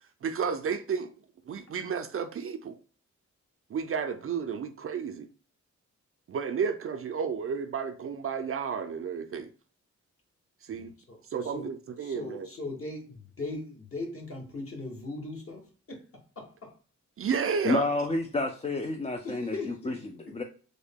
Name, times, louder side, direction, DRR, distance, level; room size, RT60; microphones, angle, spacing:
voice 1, 0.2-1.1 1.5-2.8 3.7-5.3 6.3-9.5 10.6-10.9 11.3-12.5 17.2-17.9, right 6 dB, 50° right, 0.4 m, -32 dB
voice 2, 10.7-11.7 12.0-16.7 19.2-19.9 20.2-20.4, left 2 dB, 45° left, 1.2 m, -39 dB
voice 3, 17.6-19.6 19.8-20.4, left 2 dB, 20° left, 0.3 m, -29 dB
3.6 x 2.1 x 3.5 m
cardioid pair, 85°, 30 cm